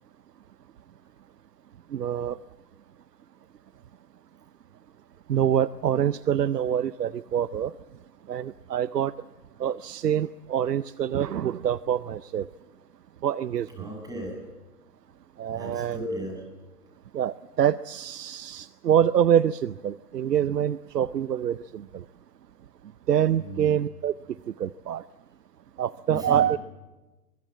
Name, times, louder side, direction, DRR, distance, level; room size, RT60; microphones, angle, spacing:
voice 1, 1.9-2.4 5.3-7.7 8.3-9.1 9.6-12.5 13.2-13.7 15.4-16.0 17.1-22.0 23.1-24.1 24.6-25.0 25.8-26.6, right 9 dB, 90° right, 17 dB, 0.7 m, -25 dB
voice 2, 13.8-14.4 15.5-16.4 23.4-23.7 26.1-26.5, equal, 10° right, 1 dB, 8.0 m, -36 dB
23.5 x 23.0 x 7.5 m, 1.2 s
hypercardioid pair, 135°, 47 cm